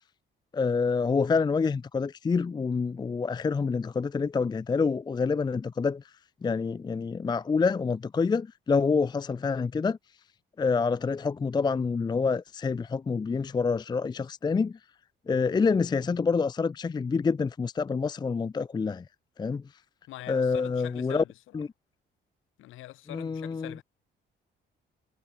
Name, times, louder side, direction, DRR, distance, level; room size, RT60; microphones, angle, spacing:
voice 1, 0.5-6.0 6.4-10.0 10.6-14.8 15.3-19.0 19.4-19.6 20.3-21.2 21.5-21.7 23.1-23.7, left 5 dB, 20° left, 0.4 m, -27 dB
voice 2, 20.1-21.6 22.6-23.8, left 16 dB, 90° left, 4.7 m, -44 dB
cardioid pair, 90°, 20 cm